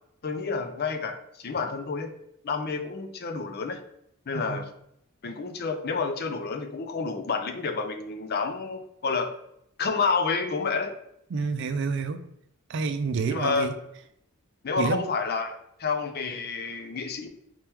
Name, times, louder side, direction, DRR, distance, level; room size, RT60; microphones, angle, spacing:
voice 1, 0.2-2.1 2.4-3.8 4.3-4.7 5.2-9.3 9.8-10.9 13.3-13.8 14.6-17.3, left 4 dB, 45° left, 7 dB, 0.5 m, -29 dB
voice 2, 11.3-12.2 12.7-13.7 14.8-15.0, right 5 dB, 55° right, 10 dB, 0.4 m, -28 dB
4.4 x 2.9 x 3.5 m, 0.75 s
head